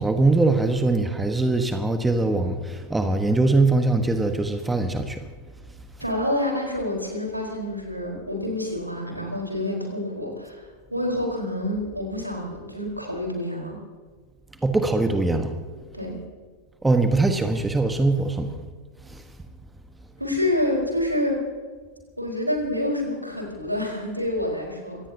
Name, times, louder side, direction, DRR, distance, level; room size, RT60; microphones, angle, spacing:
voice 1, 0.0-5.2 14.6-15.5 16.8-18.5 19.1-19.2, right 2 dB, 10° right, 7 dB, 1.3 m, -22 dB
voice 2, 6.0-13.8 15.9-16.2 20.2-21.4 22.2-25.0, left 1 dB, 90° right, 0 dB, 4.4 m, -27 dB
25.5 x 18.0 x 2.9 m, 1.5 s
figure-of-eight pair, 90°, 0 cm